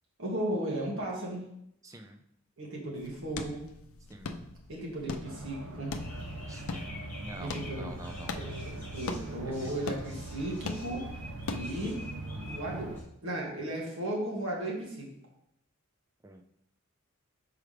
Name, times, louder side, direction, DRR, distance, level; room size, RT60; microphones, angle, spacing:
voice 1, 0.2-1.4 2.6-3.6 4.7-5.9 7.4-8.0 8.3-11.1 11.5-12.0 12.4-15.1, right 1 dB, 70° right, -2 dB, 1.7 m, -35 dB
voice 2, 1.8-2.2 4.1-4.5 6.5-8.5 9.4-9.7 16.2-16.4, right 1 dB, 15° right, 4 dB, 0.4 m, -47 dB
sound 1, 2.9-11.9, left 3 dB, 85° left, 0.5 m, -42 dB
sound 2, 5.2-13.0, right 2 dB, 90° right, 0.6 m, -43 dB
sound 3, 6.0-13.0, left 1 dB, 10° left, 1.7 m, -45 dB
5.9 x 4.7 x 3.3 m, 0.76 s
head